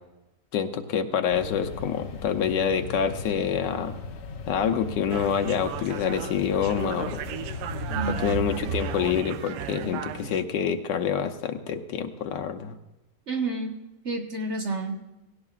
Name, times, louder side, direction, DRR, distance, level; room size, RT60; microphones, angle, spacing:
voice 1, 0.5-4.0 4.5-7.2 8.2-12.8, left 7 dB, 80° left, 6 dB, 1.4 m, -27 dB
sound 1, 1.3-9.2, left 5 dB, 60° left, 0.7 m, -38 dB
sound 2, 5.1-10.4, right 11 dB, 75° right, 1.1 m, -34 dB
voice 2, 7.9-8.3 13.3-13.8 14.0-14.9, right 3 dB, 45° right, 2 dB, 1.4 m, -30 dB
18.0 x 16.5 x 2.4 m, 0.99 s
omnidirectional pair, 1.9 m